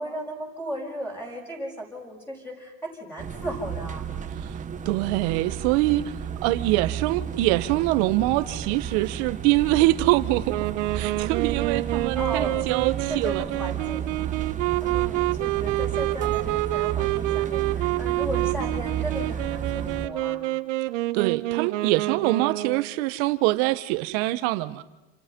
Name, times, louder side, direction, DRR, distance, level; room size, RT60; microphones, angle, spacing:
voice 1, 0.0-2.7 3.0-4.0 12.1-12.6 13.1-14.1 14.8-20.5, equal, 5° left, 6.3 m, -35 dB
sound 1, 3.2-20.1, right 8 dB, 20° right, 1.3 m, -32 dB
voice 2, 4.8-10.6 10.9-13.5 21.1-24.8, right 18 dB, 60° right, 1.6 m, -24 dB
Wind instrument woodwind instrument, 10.5-22.9, right 18 dB, 80° right, 1.4 m, -28 dB
29.5 x 27.5 x 5.5 m
supercardioid pair, 145°, 37 cm